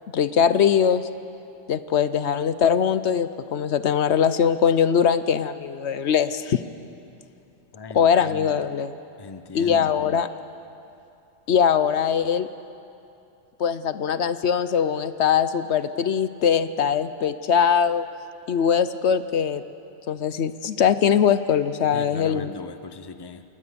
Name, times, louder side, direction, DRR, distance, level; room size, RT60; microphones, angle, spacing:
voice 1, 0.1-1.1 1.7-6.6 7.9-8.9 9.5-10.3 11.5-12.5 13.6-18.1 18.5-19.6 20.1-22.5, left 7 dB, 70° left, 13 dB, 1.0 m, -21 dB
voice 2, 7.7-8.6 9.2-10.2 21.9-23.4, left 4 dB, 25° left, 10 dB, 0.8 m, -39 dB
28.0 x 19.5 x 6.9 m, 2.7 s
omnidirectional pair, 1.2 m